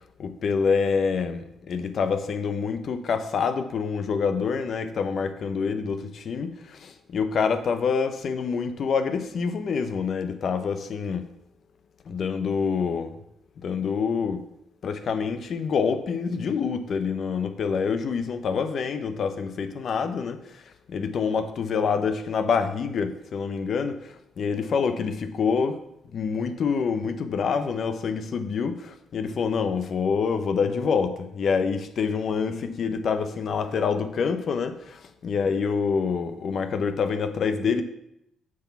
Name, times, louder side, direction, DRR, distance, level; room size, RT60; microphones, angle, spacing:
voice 1, 0.2-11.2 12.1-13.1 13.6-14.4 14.8-20.6 20.9-25.8 26.1-37.8, left 5 dB, 60° left, 9 dB, 0.8 m, -26 dB
7.5 x 6.1 x 5.9 m, 0.79 s
cardioid pair, 90°, 0 cm